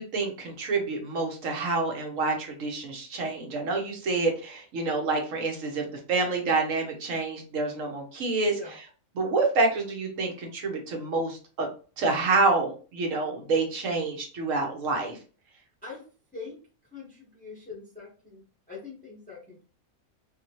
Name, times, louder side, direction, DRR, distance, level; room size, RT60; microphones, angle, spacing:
voice 1, 0.0-8.8 9.1-11.7 12.0-15.2, right 3 dB, 70° right, 2 dB, 1.2 m, -28 dB
voice 2, 16.9-19.6, left 4 dB, 10° left, -5 dB, 0.7 m, -43 dB
3.0 x 2.8 x 2.8 m, 0.37 s
omnidirectional pair, 1.4 m